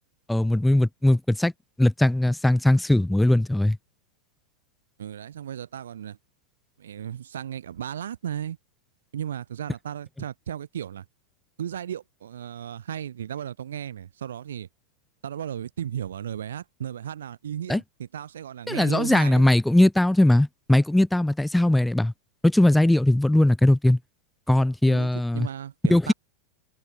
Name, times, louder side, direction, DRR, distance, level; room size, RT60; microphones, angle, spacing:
voice 1, 0.3-1.5 1.8-3.8 17.7-17.8 18.7-22.1 22.4-24.0 24.5-25.5 25.9-26.1, left 1 dB, 5° left, 0.6 m, -20 dB
voice 2, 5.0-6.2 6.8-8.6 9.1-11.1 11.6-14.7 15.2-19.5 24.8-26.1, right 9 dB, 65° right, 4.0 m, -35 dB
figure-of-eight pair, 90°, 0 cm